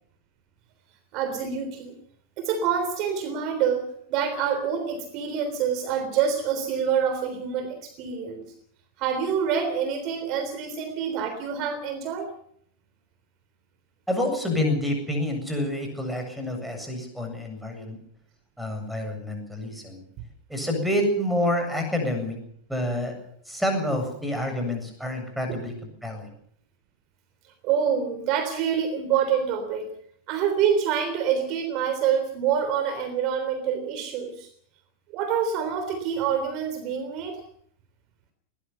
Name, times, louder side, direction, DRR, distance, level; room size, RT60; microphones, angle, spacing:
voice 1, 1.1-2.0 2.4-8.5 9.0-12.3 27.6-29.9 30.3-34.5 35.1-37.4, right 7 dB, 40° right, 7 dB, 3.5 m, -26 dB
voice 2, 14.1-18.0 18.6-20.0 20.5-22.4 22.7-23.1 23.5-26.3, left 1 dB, ahead, 5 dB, 7.7 m, -28 dB
21.0 x 19.5 x 7.0 m, 0.64 s
figure-of-eight pair, 90°, 0 cm